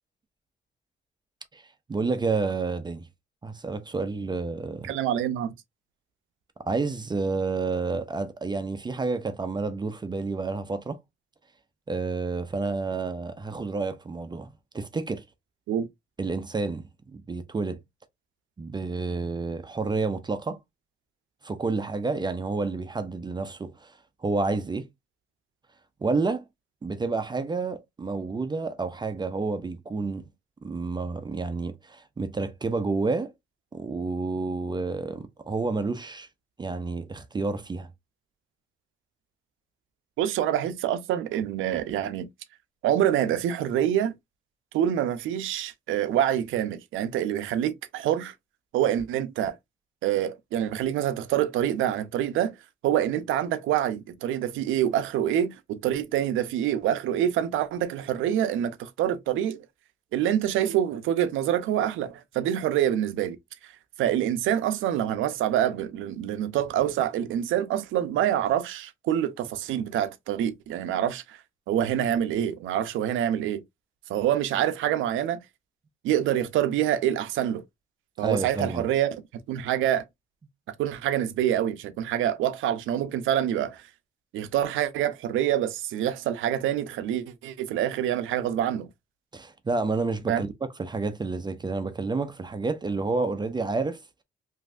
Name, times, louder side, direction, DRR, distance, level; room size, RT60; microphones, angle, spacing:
voice 1, 1.9-3.1 3.4-4.9 6.6-11.0 11.9-15.2 16.2-16.8 17.1-17.8 18.6-20.6 21.4-23.9 24.2-24.9 26.0-26.4 26.8-30.3 30.6-33.3 33.7-36.3 36.6-37.9 78.2-78.8 89.3-94.0, right 3 dB, 20° right, 0.4 m, -29 dB
voice 2, 4.9-5.5 15.7-15.9 40.2-42.3 42.8-44.1 44.7-48.3 48.7-49.6 50.0-52.6 52.8-59.6 60.1-63.4 64.0-71.4 71.7-73.6 74.1-75.4 76.0-77.6 78.2-80.0 80.7-83.8 84.3-88.9 90.3-90.4, right 11 dB, 85° right, 0.5 m, -26 dB
3.1 x 2.6 x 2.4 m
cardioid pair, 90°, 20 cm